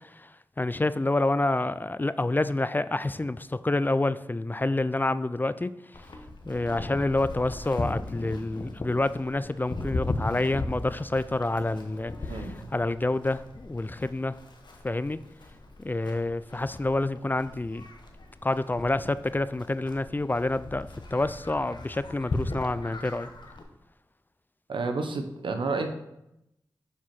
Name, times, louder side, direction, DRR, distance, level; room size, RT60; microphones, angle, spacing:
voice 1, 0.6-5.7 6.5-12.1 12.7-14.4 14.8-15.2 15.8-17.8 18.4-23.3, left 2 dB, 25° left, 14 dB, 0.3 m, -28 dB
Livestock farm animals working animals, 5.9-23.6, left 2 dB, 65° left, 1.0 m, -38 dB
voice 2, 12.3-12.7 24.7-25.9, right 3 dB, 80° right, 6 dB, 0.8 m, -30 dB
7.0 x 4.6 x 4.3 m, 0.85 s
cardioid pair, 40°, 8 cm